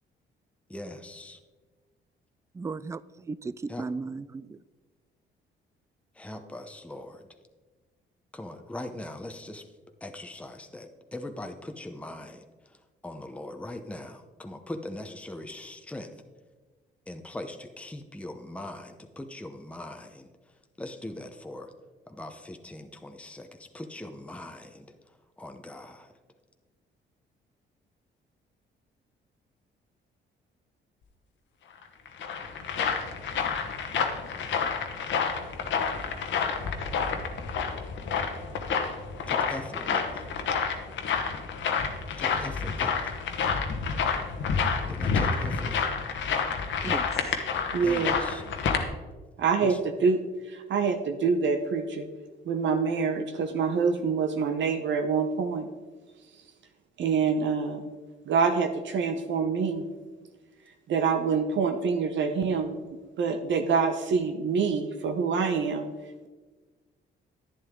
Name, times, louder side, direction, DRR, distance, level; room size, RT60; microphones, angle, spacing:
voice 1, 0.7-1.4 3.7-3.8 6.2-7.2 8.3-9.7 10.0-12.4 13.0-16.1 17.1-20.3 20.8-21.7 22.1-23.5 23.7-24.9 25.4-26.1 39.3-40.2 42.2-43.1 44.9-45.7 47.8-48.4 49.6-49.8, left 1 dB, 5° left, 0.8 m, -41 dB
voice 2, 2.6-4.6 46.8-47.4, right 4 dB, 15° right, 0.3 m, -36 dB
sound 1, 31.8-48.8, left 6 dB, 70° left, 1.2 m, -29 dB
voice 3, 47.7-48.2 49.4-50.2 50.5-52.1 52.5-55.7 57.0-57.9 58.3-59.8 60.9-62.8 63.2-65.9, right 5 dB, 70° right, 0.9 m, -26 dB
10.5 x 9.8 x 3.7 m
cardioid pair, 90°, 20 cm